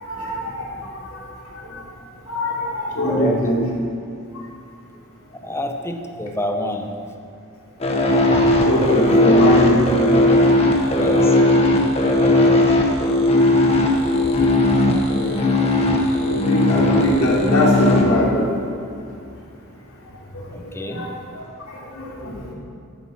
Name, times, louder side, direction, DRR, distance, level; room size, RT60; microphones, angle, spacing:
voice 1, 0.0-0.8 1.7-1.8 2.3-3.6 8.1-10.2 10.5-11.4 14.1-14.2 15.1-15.5 16.3-18.5 20.9-21.2 21.9-22.5, equal, 90° left, -4 dB, 3.3 m, -22 dB
voice 2, 3.1-3.5 5.3-6.9 10.9-11.4 11.8-12.6 20.5-21.1, left 1 dB, 10° left, 4 dB, 0.9 m, -28 dB
sound 1, 7.8-18.0, left 2 dB, 30° left, 1.4 m, -17 dB
13.5 x 8.7 x 5.9 m, 2.5 s
head